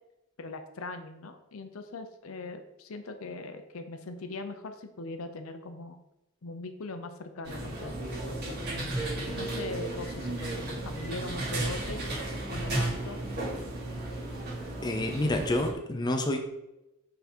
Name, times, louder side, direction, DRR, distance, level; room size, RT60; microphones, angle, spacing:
voice 1, 0.4-6.0 6.4-8.6 9.4-12.0 12.5-13.2, left 3 dB, 75° left, 7 dB, 0.6 m, -40 dB
sound 1, 7.4-15.7, right 1 dB, 50° right, 1.8 m, -34 dB
voice 2, 14.8-16.4, left 1 dB, 20° left, 4 dB, 0.5 m, -28 dB
5.7 x 3.8 x 4.4 m, 0.92 s
head